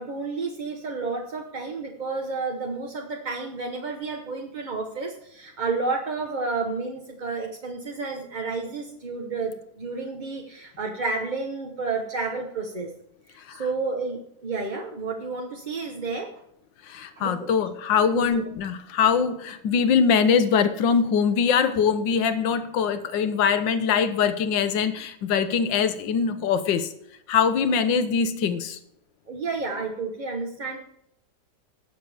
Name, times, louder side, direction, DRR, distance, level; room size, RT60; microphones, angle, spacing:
voice 1, 0.0-12.9 13.3-16.3 17.2-17.5 18.1-18.4 29.3-30.8, right 4 dB, 35° right, 1 dB, 0.8 m, -31 dB
voice 2, 16.9-26.9 27.3-28.8, left 6 dB, 80° left, 11 dB, 1.6 m, -22 dB
18.5 x 6.7 x 3.4 m, 0.74 s
omnidirectional pair, 2.0 m